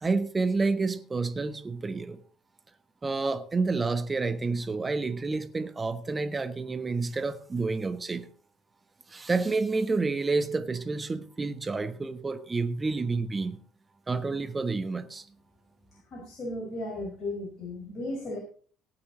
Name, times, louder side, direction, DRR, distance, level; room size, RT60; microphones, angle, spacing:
voice 1, 0.0-2.2 3.0-8.3 9.1-13.6 14.1-15.2, right 3 dB, 20° right, 1.2 m, -29 dB
voice 2, 16.1-18.4, left 1 dB, 40° left, 4.8 m, -35 dB
17.5 x 9.6 x 3.9 m
figure-of-eight pair, 55°, 0 cm